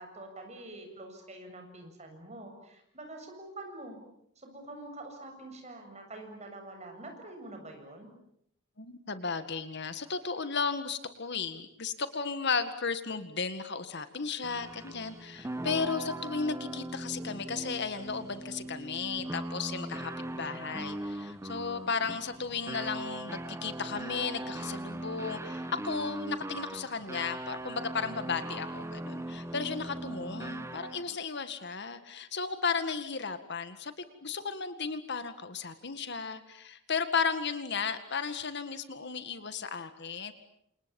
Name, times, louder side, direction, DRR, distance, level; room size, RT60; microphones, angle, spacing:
voice 1, 0.0-4.0 4.4-8.1, right 2 dB, 35° right, 4 dB, 7.2 m, -46 dB
voice 2, 8.8-40.3, left 5 dB, 55° left, 10 dB, 2.0 m, -34 dB
sound 1, 14.4-31.2, right 1 dB, 15° right, 1.0 m, -40 dB
29.0 x 28.0 x 7.2 m, 0.73 s
head